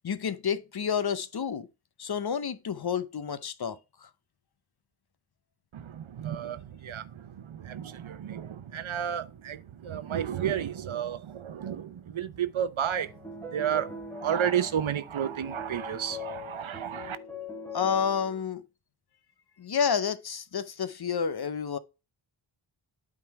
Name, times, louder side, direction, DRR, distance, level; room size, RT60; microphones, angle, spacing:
voice 1, 0.0-1.7 2.0-4.1 17.7-18.6 19.6-21.8, left 7 dB, 50° left, 0.7 m, -30 dB
voice 2, 5.7-13.1 13.5-17.2, right 9 dB, 75° right, 0.8 m, -32 dB
sound 1, 12.9-18.4, left 2 dB, 5° left, 1.7 m, -42 dB
8.9 x 3.8 x 4.6 m
wide cardioid pair, 90°, 48 cm